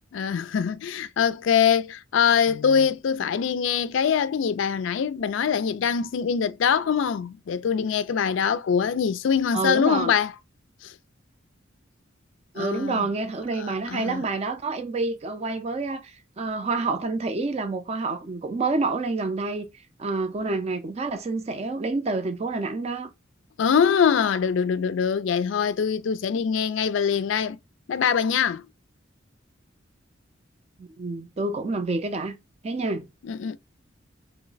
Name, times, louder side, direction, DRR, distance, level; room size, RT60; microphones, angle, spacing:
voice 1, 0.1-10.3 10.8-10.9 12.6-13.1 13.6-14.2 23.6-27.6 27.9-28.6 33.2-33.6, left 7 dB, 70° left, 0.3 m, -23 dB
voice 2, 9.5-10.1 12.5-19.7 20.0-23.1 30.8-32.4 32.6-33.1, right 3 dB, 30° right, 0.4 m, -28 dB
2.9 x 2.1 x 3.9 m
head